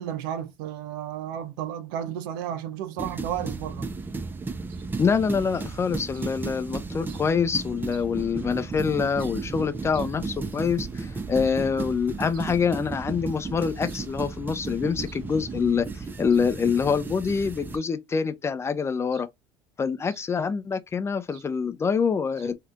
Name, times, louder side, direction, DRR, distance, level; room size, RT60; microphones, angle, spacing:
voice 1, 0.0-3.9 7.1-7.2 9.2-9.3 9.9-10.0 19.1-19.2 21.3-21.4, right 10 dB, 80° right, 0.5 m, -33 dB
sound 1, 3.0-17.8, right 4 dB, 20° right, 0.6 m, -34 dB
voice 2, 5.0-19.3 19.8-22.6, left 6 dB, 25° left, 0.6 m, -26 dB
2.8 x 2.4 x 3.4 m
supercardioid pair, 85°, 10 cm